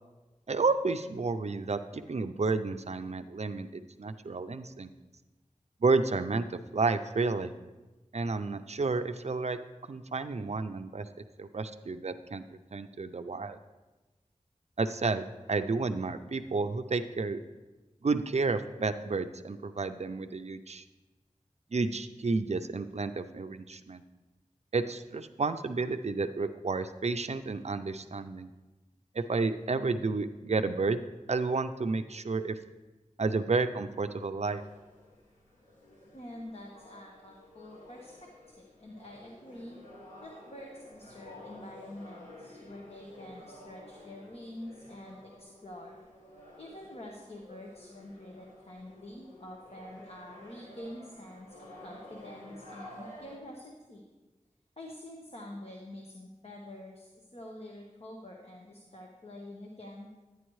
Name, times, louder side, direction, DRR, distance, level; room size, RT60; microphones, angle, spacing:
voice 1, 0.5-4.9 5.8-7.5 8.1-9.6 9.9-11.1 11.4-12.4 12.7-13.6 14.8-15.2 15.5-17.4 18.0-20.8 21.7-24.0 24.7-28.5 29.1-31.0 31.3-32.6 33.2-34.6, right 3 dB, 55° right, 9 dB, 0.5 m, -31 dB
sound 1, 34.4-53.4, left 1 dB, 85° left, 2.3 m, -51 dB
voice 2, 36.1-38.3 38.6-39.8 40.2-46.0 46.6-54.0 54.8-60.1, left 1 dB, 50° left, 0 dB, 1.1 m, -47 dB
11.0 x 9.3 x 3.1 m, 1.2 s
wide cardioid pair, 60°, 13 cm